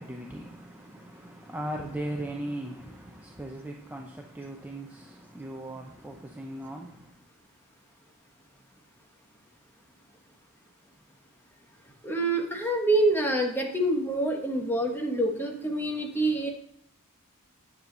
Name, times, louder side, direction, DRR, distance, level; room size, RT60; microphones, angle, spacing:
voice 1, 0.0-7.1, right 1 dB, 10° right, 0.6 m, -38 dB
voice 2, 12.0-16.5, right 1 dB, 10° left, 1.2 m, -26 dB
10.0 x 7.3 x 3.9 m
head